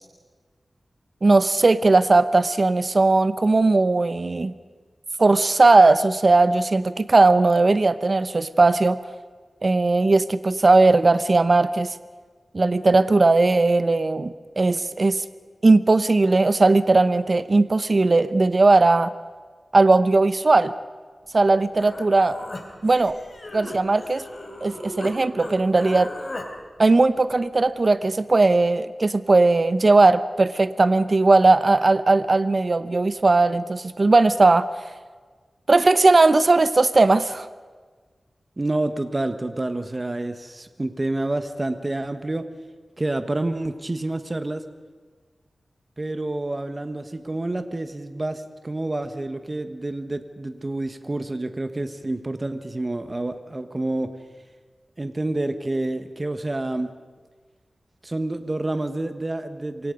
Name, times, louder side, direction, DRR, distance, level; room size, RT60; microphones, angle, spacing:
voice 1, 1.2-4.5 5.2-9.0 9.6-12.0 12.5-15.2 15.6-19.1 19.7-20.7 21.3-22.4 22.8-23.2 23.5-24.2 24.6-26.1 26.8-34.7 35.7-37.5, right 3 dB, 45° right, 13 dB, 0.8 m, -18 dB
Human voice, 21.8-25.1 25.4-26.5, left 1 dB, 40° left, 3.8 m, -37 dB
voice 2, 38.6-42.5 43.0-44.6 46.0-54.2 55.0-57.0 58.0-59.9, right 2 dB, 30° right, 9 dB, 1.4 m, -28 dB
27.5 x 24.0 x 5.3 m, 1.5 s
wide cardioid pair, 75°, 0 cm